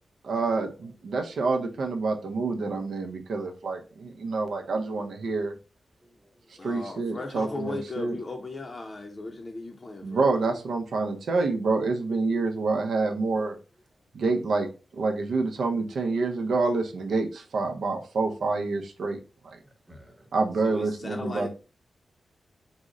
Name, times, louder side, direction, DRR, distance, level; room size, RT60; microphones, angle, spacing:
voice 1, 0.2-5.6 6.6-8.2 10.0-13.6 14.1-19.2 19.5-19.6 20.3-21.5, right 3 dB, 85° right, 0.6 m, -27 dB
voice 2, 6.0-6.7 19.6-20.3, equal, 15° right, 0.8 m, -56 dB
voice 3, 6.6-10.3 20.6-21.5, left 2 dB, 35° left, 0.5 m, -37 dB
3.7 x 2.1 x 3.6 m
wide cardioid pair, 100°, 0 cm